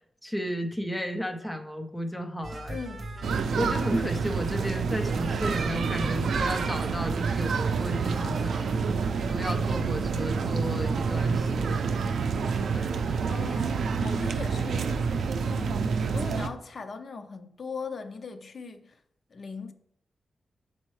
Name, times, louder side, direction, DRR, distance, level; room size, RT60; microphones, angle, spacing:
voice 1, 0.2-2.8 3.6-12.0 12.7-13.4, equal, 5° left, 0.6 m, -34 dB
sound 1, 2.4-9.0, right 1 dB, 45° right, 0.7 m, -42 dB
voice 2, 2.7-3.0 13.3-15.1 15.4-18.9 19.3-19.7, left 4 dB, 45° left, 0.5 m, -39 dB
sound 2, 3.2-16.5, right 5 dB, 90° right, 0.4 m, -28 dB
7.5 x 4.2 x 3.2 m
wide cardioid pair, 160°, 0 cm